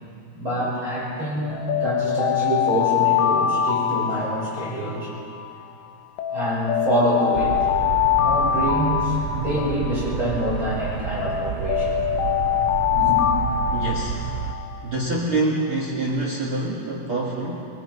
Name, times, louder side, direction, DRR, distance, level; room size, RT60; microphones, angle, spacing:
voice 1, 0.3-5.1 6.3-7.6 8.2-12.0 12.9-13.2, right 1 dB, 25° right, -8 dB, 7.1 m, -26 dB
Alarm, 1.5-5.6 6.2-10.6 11.2-15.0, left 9 dB, 85° left, 2.2 m, -24 dB
sound 1, 7.3-14.5, right 9 dB, 80° right, 2.7 m, -30 dB
voice 2, 13.7-14.2 14.8-17.7, right 2 dB, 65° right, -4 dB, 1.3 m, -26 dB
24.5 x 21.5 x 5.4 m, 2.6 s
omnidirectional pair, 5.8 m